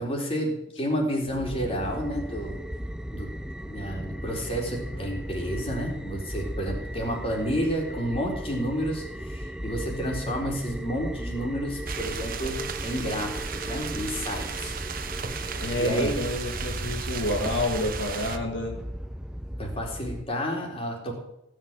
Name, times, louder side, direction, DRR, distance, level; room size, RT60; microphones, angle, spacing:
voice 1, 0.0-2.6 3.1-3.3 3.6-14.8 15.8-16.1 19.6-21.1, equal, 30° left, 0 dB, 4.0 m, -30 dB
sound 1, 1.2-20.2, equal, 5° right, 0.5 m, -36 dB
sound 2, 11.9-18.4, right 5 dB, 45° right, 1.2 m, -35 dB
voice 2, 15.6-18.8, left 1 dB, 70° left, 1 dB, 2.1 m, -29 dB
17.0 x 6.7 x 9.1 m, 0.82 s
head